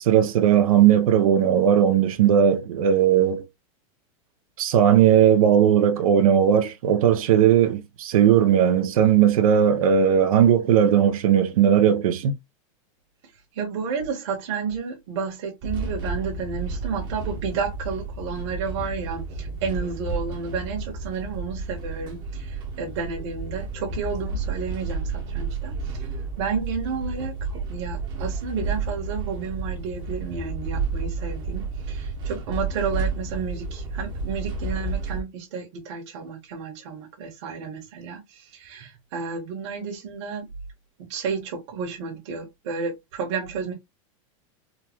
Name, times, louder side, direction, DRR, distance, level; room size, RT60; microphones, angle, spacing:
voice 1, 0.0-3.4 4.6-12.3, right 9 dB, 85° right, 0.7 m, -18 dB
voice 2, 13.2-26.1 26.4-40.4 41.0-43.7, right 5 dB, 55° right, 1.3 m, -31 dB
sound 1, 15.6-35.2, right 4 dB, 25° right, 0.8 m, -31 dB
3.8 x 2.3 x 2.9 m
supercardioid pair, 170°, 18 cm